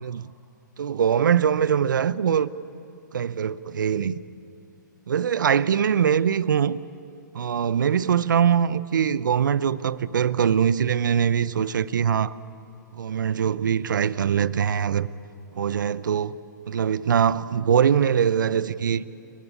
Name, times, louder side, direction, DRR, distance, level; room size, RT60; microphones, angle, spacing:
voice 1, 0.0-0.3 0.8-2.5 3.1-4.2 5.1-6.8 7.3-12.3 12.9-15.1 15.5-16.4 16.7-19.0, right 8 dB, 70° right, 0.7 m, -22 dB
29.5 x 16.0 x 8.4 m
hypercardioid pair, 125°, 11 cm